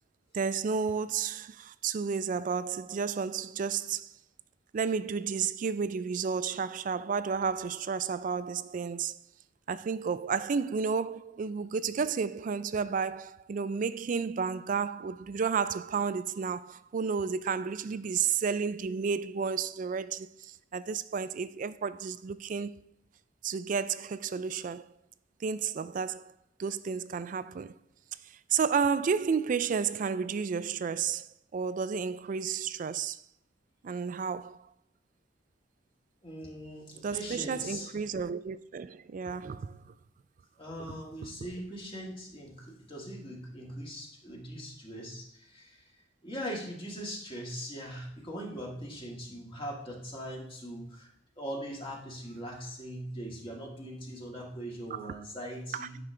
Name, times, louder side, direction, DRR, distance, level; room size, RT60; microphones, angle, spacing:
voice 1, 0.3-4.1 4.7-9.2 9.7-22.7 23.4-24.9 25.4-26.3 26.6-27.8 28.5-33.2 33.8-34.7 37.0-39.9 54.9-55.1 55.7-55.9, right 6 dB, 45° right, 0.3 m, -32 dB
voice 2, 36.2-37.9 40.6-45.9 46.2-51.1 51.4-56.0, equal, 30° left, 1.8 m, -41 dB
9.7 x 5.1 x 3.3 m
head